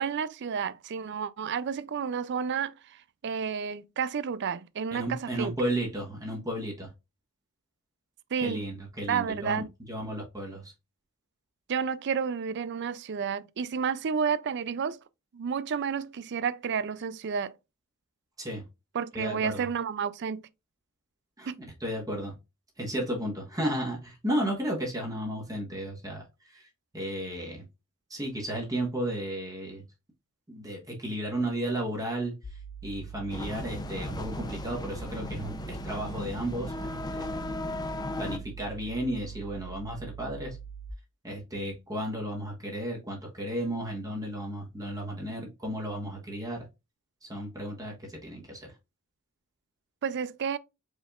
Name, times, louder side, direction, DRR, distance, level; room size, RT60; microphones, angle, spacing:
voice 1, 0.0-5.5 8.3-8.6 9.1-9.7 11.7-15.0 15.3-17.5 18.9-20.5 21.5-21.6 50.0-50.6, right 6 dB, 50° right, 0.4 m, -31 dB
voice 2, 4.9-6.9 8.4-10.7 18.4-18.6 19.1-19.7 21.4-21.5 21.8-22.3 22.8-26.7 26.9-27.6 28.1-29.8 30.5-32.3 32.8-37.3 38.2-40.6 41.2-46.7 47.2-48.7, right 1 dB, 15° right, 1.3 m, -33 dB
sound 1, 32.4-40.9, right 7 dB, 70° left, 0.6 m, -43 dB
sound 2, 33.3-38.4, left 2 dB, 20° left, 0.5 m, -36 dB
4.9 x 4.2 x 2.4 m
head